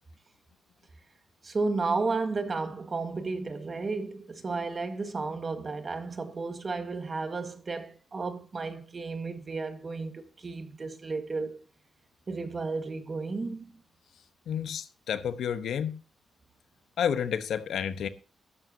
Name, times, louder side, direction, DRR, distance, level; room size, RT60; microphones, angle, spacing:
voice 1, 1.4-11.6 12.3-13.8, right 3 dB, 30° right, 1.7 m, -33 dB
voice 2, 14.5-16.0 17.0-18.1, left 8 dB, 80° left, 1.1 m, -30 dB
14.5 x 12.5 x 2.8 m
wide cardioid pair, 140°, 0 cm